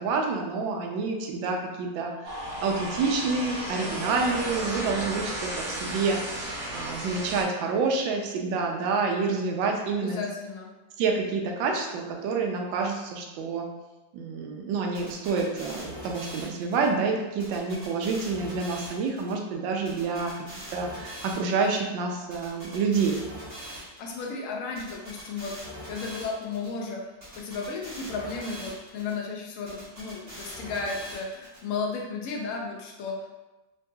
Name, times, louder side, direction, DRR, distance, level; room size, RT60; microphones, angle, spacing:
voice 1, 0.0-10.2 11.0-13.7 14.1-23.2, right 4 dB, 85° right, 2 dB, 1.3 m, -28 dB
sound 1, 2.2-7.4, equal, 55° right, 1.0 m, -34 dB
voice 2, 9.9-10.7 24.0-27.0 27.4-33.3, left 4 dB, 80° left, 0 dB, 0.7 m, -34 dB
sound 2, 14.9-16.9 17.4-19.3 19.9-21.8 22.3-24.2 24.8-26.7 27.2-29.1 29.7-31.6, equal, 30° right, 1.2 m, -42 dB
3.8 x 2.6 x 2.2 m, 1.1 s
omnidirectional pair, 2.0 m